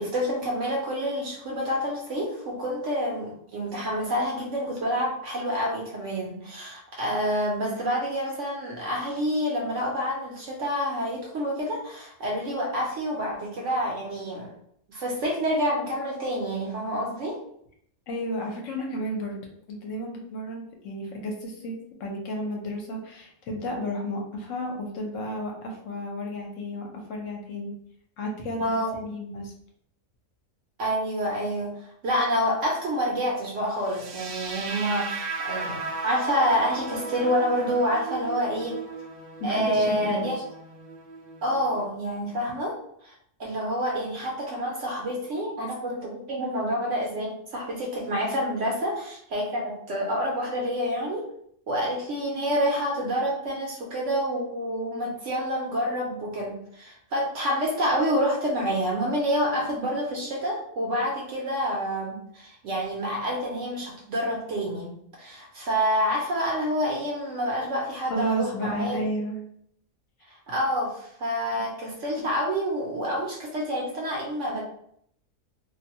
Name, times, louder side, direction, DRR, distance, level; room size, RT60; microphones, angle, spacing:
voice 1, 0.0-14.5 14.9-17.4 28.6-29.0 30.8-38.8 39.4-40.4 41.4-43.1 43.4-51.3 51.7-64.9 65.2-69.1 70.3-74.6, equal, 65° right, -2 dB, 0.9 m, -28 dB
voice 2, 18.1-19.4 19.7-21.7 22.0-27.7 28.2-29.5 39.4-40.3 68.1-69.4 71.5-71.6, equal, 70° left, 1 dB, 1.0 m, -32 dB
sound 1, 33.8-41.9, right 3 dB, 85° right, 0.4 m, -36 dB
2.6 x 2.2 x 2.8 m, 0.67 s
omnidirectional pair, 1.4 m